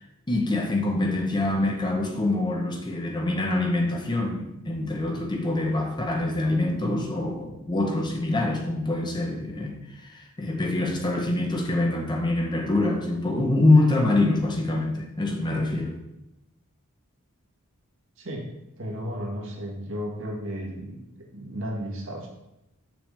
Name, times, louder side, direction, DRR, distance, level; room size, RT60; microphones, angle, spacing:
voice 1, 0.3-15.9, left 2 dB, 20° left, 2 dB, 0.8 m, -25 dB
voice 2, 18.2-18.5 18.8-21.0 21.3-22.3, equal, 60° right, 0 dB, 1.6 m, -33 dB
6.8 x 6.1 x 3.3 m, 0.89 s
head